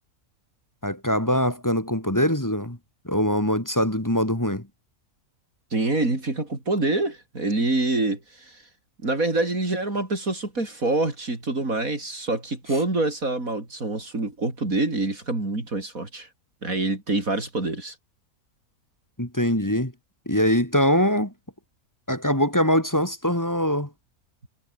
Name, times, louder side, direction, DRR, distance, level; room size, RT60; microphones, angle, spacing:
voice 1, 0.8-2.8 3.0-4.7 19.2-19.9 20.3-21.3 22.1-23.9, equal, 10° left, 2.6 m, -23 dB
voice 2, 5.7-8.6 9.0-16.3 16.6-18.0, right 2 dB, 65° right, 5.3 m, -26 dB
omnidirectional pair, 1.6 m